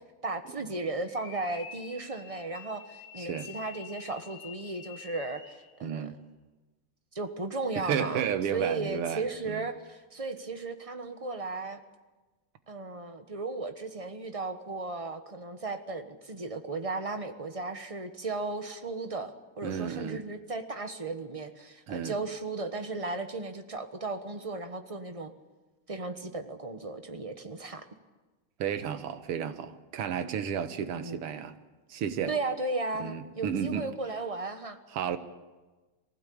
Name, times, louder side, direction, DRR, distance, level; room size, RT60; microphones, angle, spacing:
voice 1, 0.2-6.2 7.1-8.2 8.5-11.8 12.7-25.3 25.9-27.8 31.0-31.2 32.3-34.8, right 3 dB, 25° right, 7 dB, 0.9 m, -35 dB
sound 1, 1.1-5.8, left 7 dB, 60° left, 2.4 m, -48 dB
voice 2, 5.8-6.2 7.8-9.6 19.6-20.2 21.9-22.1 28.6-31.5 31.9-32.3 33.0-33.9 34.9-35.2, right 8 dB, 85° right, 10 dB, 2.1 m, -32 dB
23.0 x 16.0 x 8.6 m, 1.2 s
omnidirectional pair, 2.4 m